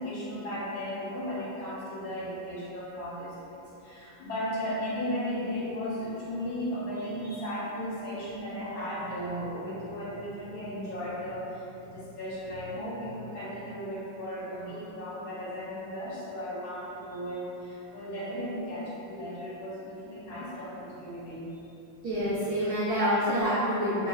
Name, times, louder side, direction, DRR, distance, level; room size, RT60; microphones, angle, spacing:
voice 1, 0.0-21.6 22.6-22.7, equal, 90° left, -8 dB, 1.8 m, -36 dB
voice 2, 22.0-24.1, equal, 70° right, -9 dB, 0.9 m, -27 dB
5.7 x 2.1 x 2.2 m, 2.9 s
omnidirectional pair, 2.2 m